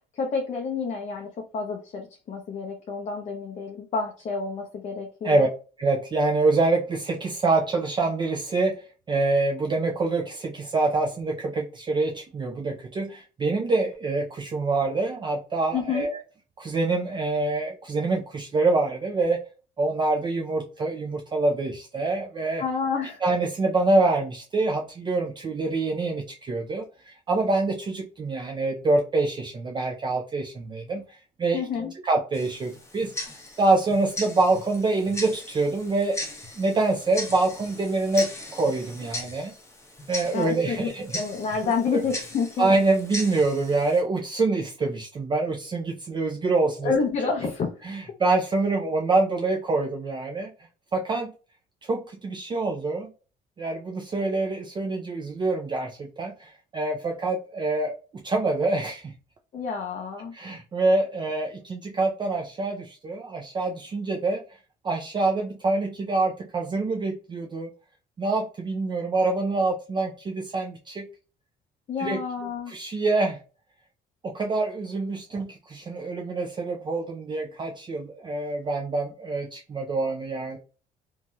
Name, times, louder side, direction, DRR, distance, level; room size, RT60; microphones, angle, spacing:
voice 1, 0.1-5.5 15.7-16.1 22.6-23.2 31.5-31.9 40.3-42.7 46.8-47.7 59.5-60.3 71.9-72.7, left 5 dB, 45° left, 2 dB, 0.6 m, -29 dB
voice 2, 5.8-16.2 16.6-19.4 19.8-22.6 23.2-31.6 32.0-36.2 36.6-39.5 40.1-41.2 41.9-42.0 42.6-46.9 47.4-47.5 47.8-50.5 50.9-51.3 51.8-53.1 53.6-59.1 60.3-64.4 64.8-67.7 68.2-71.1 72.0-72.2 72.7-73.4 74.2-80.6, right 3 dB, 25° right, 1 dB, 0.5 m, -26 dB
Tick-tock, 32.3-44.0, left 1 dB, 15° left, 1.0 m, -38 dB
3.0 x 2.7 x 2.3 m, 0.35 s
cardioid pair, 110°, 17 cm